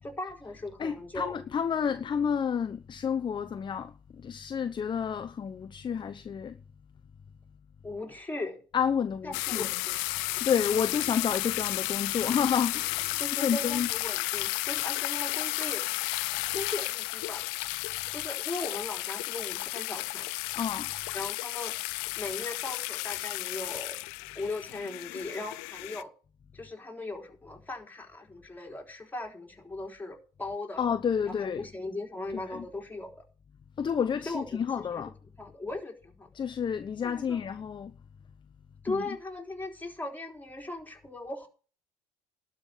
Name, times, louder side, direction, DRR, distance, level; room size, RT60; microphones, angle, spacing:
voice 1, 0.0-1.4 1.9-2.0 7.8-8.6 9.2-10.0 13.2-15.8 16.5-17.5 18.1-20.3 21.1-21.7 22.2-23.9 24.4-26.1 26.5-30.9 31.3-33.1 34.3-35.1 35.4-36.3 37.0-37.4 38.8-41.5, left 2 dB, 10° left, 3.9 m, -38 dB
voice 2, 0.8-3.9 4.2-6.6 8.7-9.7 10.4-13.9 20.6-20.9 30.8-31.6 32.3-32.4 33.8-35.1 36.4-37.9 38.9-39.0, left 7 dB, 35° left, 0.8 m, -30 dB
sound 1, 9.3-26.0, left 23 dB, 80° left, 0.5 m, -33 dB
12.0 x 5.8 x 9.1 m
supercardioid pair, 75°, 14 cm